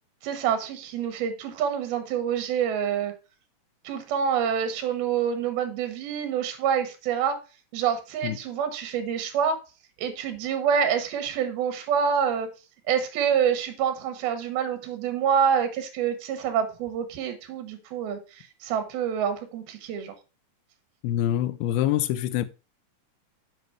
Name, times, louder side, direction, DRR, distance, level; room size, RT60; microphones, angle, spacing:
voice 1, 0.2-3.1 3.8-7.4 7.7-9.6 10.0-12.5 12.9-20.1, right 7 dB, 80° right, 3.1 m, -27 dB
voice 2, 21.0-22.5, left 12 dB, 85° left, 2.5 m, -25 dB
7.8 x 5.3 x 4.4 m
omnidirectional pair, 4.4 m